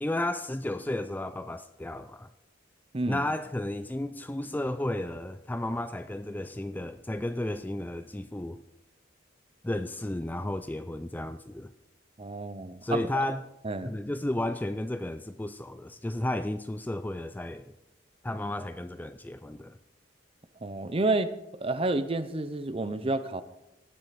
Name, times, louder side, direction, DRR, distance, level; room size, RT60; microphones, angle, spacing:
voice 1, 0.0-2.3 3.1-8.6 9.6-11.7 12.8-13.4 13.8-17.7 18.2-19.8, left 1 dB, 10° left, 0.3 m, -33 dB
voice 2, 12.2-13.2 13.6-13.9 20.6-21.3 21.6-23.4, right 2 dB, 30° right, 0.6 m, -30 dB
18.5 x 7.7 x 4.1 m
head